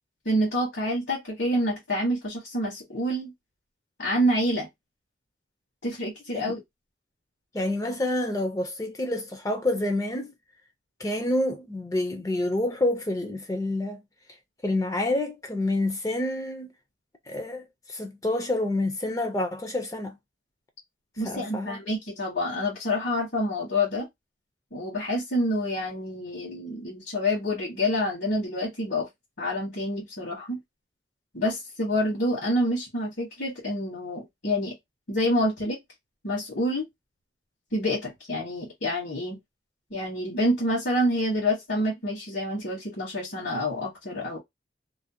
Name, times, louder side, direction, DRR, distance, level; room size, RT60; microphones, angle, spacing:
voice 1, 0.2-3.3 4.0-4.7 5.8-6.6 21.2-24.1 24.7-29.1 29.4-30.6 31.3-34.8 35.1-35.8 36.2-36.9 37.7-39.4 39.9-44.4, left 1 dB, 65° left, 1.0 m, -27 dB
voice 2, 7.5-10.3 11.0-14.0 14.6-16.7 17.3-20.2 21.2-21.8, left 1 dB, 15° left, 0.4 m, -28 dB
2.5 x 2.1 x 2.6 m
head